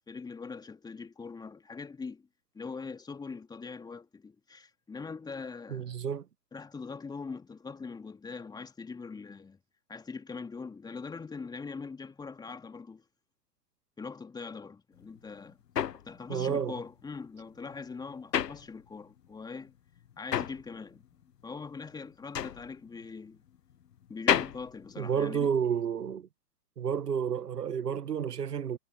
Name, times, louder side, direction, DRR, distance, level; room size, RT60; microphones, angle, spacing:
voice 1, 0.0-2.3 2.5-6.0 6.5-9.6 9.9-13.0 14.0-15.6 15.9-19.7 20.2-21.0 21.4-23.4 24.1-25.5, left 4 dB, 10° left, 2.6 m, -42 dB
voice 2, 5.7-6.2 16.3-16.8 25.0-26.3 26.8-28.8, right 7 dB, 70° right, 1.4 m, -30 dB
sound 1, 15.0-19.3 19.6-25.8, left 9 dB, 75° left, 0.9 m, -34 dB
figure-of-eight pair, 120°, 49 cm